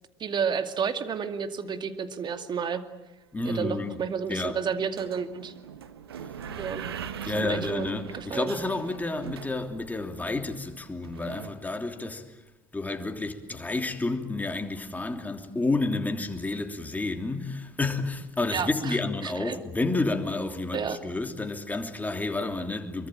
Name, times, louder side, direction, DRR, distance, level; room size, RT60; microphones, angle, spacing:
voice 1, 0.2-2.8 3.5-5.5 6.6-6.9 7.2-8.5 18.5-19.0 19.2-19.6 20.7-21.0, right 6 dB, 35° right, 2.4 m, -31 dB
voice 2, 3.3-4.0 4.3-4.6 7.2-12.4 12.7-23.1, left 2 dB, 15° left, 3.1 m, -30 dB
sound 1, 3.8-4.2 5.0-11.5, right 8 dB, 80° right, 1.5 m, -41 dB
25.5 x 23.5 x 8.8 m
figure-of-eight pair, 65°, 13 cm